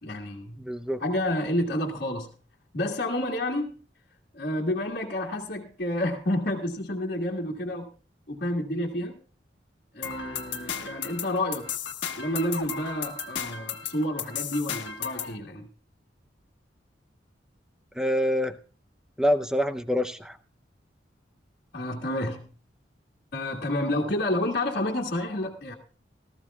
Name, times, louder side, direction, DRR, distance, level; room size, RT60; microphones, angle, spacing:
voice 1, 0.0-0.6 1.0-2.3 2.7-3.8 4.3-7.9 8.3-9.2 9.9-11.7 12.2-15.7 21.7-22.5 23.3-25.7, left 1 dB, 60° left, -3 dB, 1.8 m, -29 dB
voice 2, 0.6-1.0 18.0-18.5 19.2-20.4, equal, 5° right, 9 dB, 0.6 m, -26 dB
sound 1, 10.0-15.4, left 7 dB, 90° left, 1.3 m, -35 dB
18.5 x 14.0 x 2.3 m, 0.38 s
head